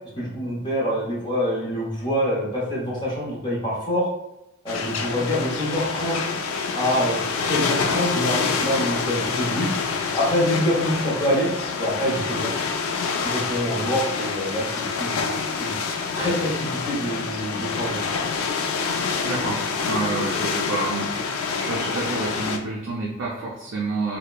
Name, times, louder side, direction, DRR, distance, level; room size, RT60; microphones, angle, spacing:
voice 1, 0.2-4.1 4.6-6.2 6.7-9.7 10.1-11.5 11.8-12.6 13.2-15.2 15.6-15.7 16.1-18.0, equal, 20° left, -6 dB, 0.6 m, -25 dB
sound 1, 4.7-22.6, left 5 dB, 75° left, 0.3 m, -27 dB
voice 2, 19.2-19.6 19.8-24.2, right 3 dB, 60° right, -6 dB, 0.4 m, -29 dB
2.7 x 2.1 x 2.2 m, 0.90 s
head